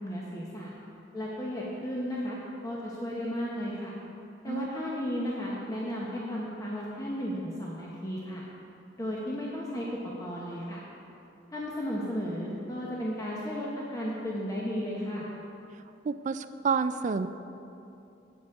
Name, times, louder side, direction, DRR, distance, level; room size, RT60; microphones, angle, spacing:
voice 1, 0.0-0.7 1.1-2.4 2.6-3.9 4.4-8.4 9.0-9.9 10.2-10.8 11.5-15.3, equal, 20° left, -5 dB, 1.0 m, -34 dB
voice 2, 16.0-17.3, right 5 dB, 40° right, 11 dB, 0.3 m, -29 dB
8.6 x 8.2 x 4.8 m, 2.7 s
head